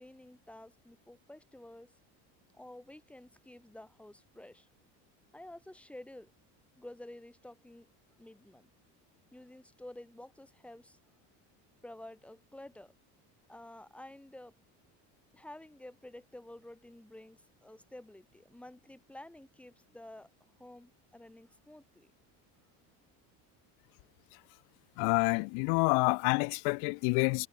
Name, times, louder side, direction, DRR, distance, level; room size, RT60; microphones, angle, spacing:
voice 1, 0.0-1.9 2.5-4.7 5.3-6.3 6.8-7.9 8.2-8.7 9.3-11.0 11.8-12.9 13.5-14.5 15.3-20.3 20.6-22.1, left 1 dB, 5° left, 5.6 m, -51 dB
voice 2, 25.0-27.5, left 40 dB or more, 85° left, 1.2 m, -28 dB
cardioid pair, 180°, 35 cm